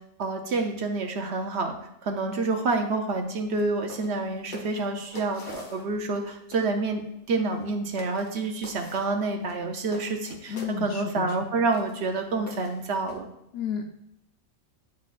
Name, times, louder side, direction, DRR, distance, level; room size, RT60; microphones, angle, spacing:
voice 1, 0.2-1.7 2.0-7.0 7.3-13.3, right 3 dB, 60° right, 4 dB, 0.9 m, -28 dB
sound 1, 3.5-3.6 3.9-4.2 4.5-6.2 6.5-6.7 7.5-7.6 8.0-8.3 8.6-9.1 9.4-10.8 11.3-11.4 11.7-12.0 12.5-13.2, left 2 dB, 40° left, 1.0 m, -44 dB
voice 2, 10.5-11.6 13.5-13.8, left 7 dB, 65° left, 4 dB, 0.7 m, -33 dB
9.5 x 4.2 x 2.4 m, 0.80 s
omnidirectional pair, 1.4 m